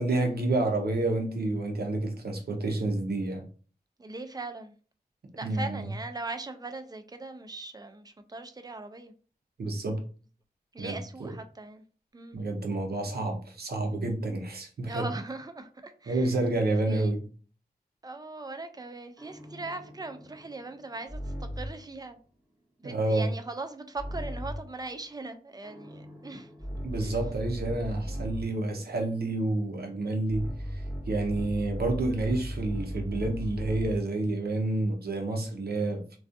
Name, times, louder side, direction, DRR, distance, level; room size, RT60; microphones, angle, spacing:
voice 1, 0.0-3.4 5.4-5.9 9.6-10.0 10.8-11.3 12.3-15.1 16.1-17.2 22.8-23.3 26.8-36.2, right 2 dB, 75° right, 0.6 m, -29 dB
voice 2, 4.0-4.7 5.4-9.1 10.7-11.8 12.1-12.4 14.8-16.3 16.9-17.1 18.0-22.2 22.8-26.5 27.0-27.2 28.0-28.3, right 3 dB, 25° right, 0.3 m, -40 dB
sound 1, 19.2-21.9 24.0-24.8 25.6-28.6 30.3-34.2, equal, 5° right, 0.8 m, -37 dB
2.4 x 2.3 x 2.5 m
wide cardioid pair, 80°, 16 cm